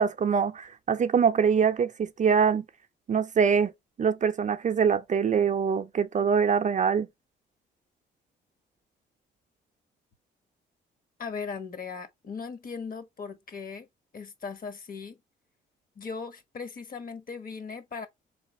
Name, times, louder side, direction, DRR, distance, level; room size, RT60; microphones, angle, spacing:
voice 1, 0.0-2.6 3.1-3.7 4.0-7.1, right 6 dB, 40° right, 0.5 m, -24 dB
voice 2, 11.2-13.9 14.1-15.2 16.0-18.1, left 5 dB, 45° left, 1.2 m, -38 dB
3.8 x 3.2 x 4.1 m
cardioid pair, 90°, 20 cm